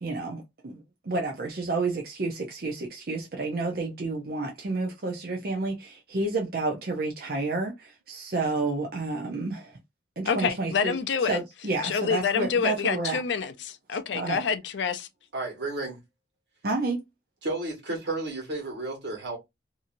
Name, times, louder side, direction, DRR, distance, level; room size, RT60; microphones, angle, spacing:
voice 1, 0.0-9.8 10.2-10.9 11.2-13.2 14.1-14.4 16.6-17.0, right 3 dB, 50° right, 0.6 m, -30 dB
voice 2, 10.2-11.4 11.8-15.1, left 6 dB, 75° left, 0.4 m, -27 dB
voice 3, 15.3-16.0 17.4-19.4, right 2 dB, 70° right, 1.5 m, -32 dB
2.8 x 2.7 x 2.5 m
head